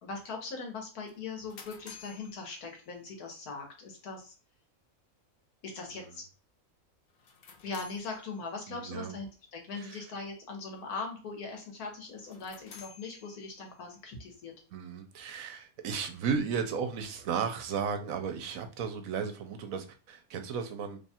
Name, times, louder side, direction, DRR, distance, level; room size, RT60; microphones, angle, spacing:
voice 1, 0.0-4.3 5.6-6.2 7.6-14.5, left 4 dB, 85° left, 2 dB, 1.5 m, -40 dB
sound 1, 1.1-3.3 7.1-8.8 12.1-13.9, left 6 dB, 55° left, 0.7 m, -53 dB
voice 2, 8.7-9.1 9.8-10.0 14.7-21.0, right 6 dB, 75° right, 6 dB, 1.0 m, -34 dB
3.1 x 2.3 x 4.2 m, 0.35 s
omnidirectional pair, 1.5 m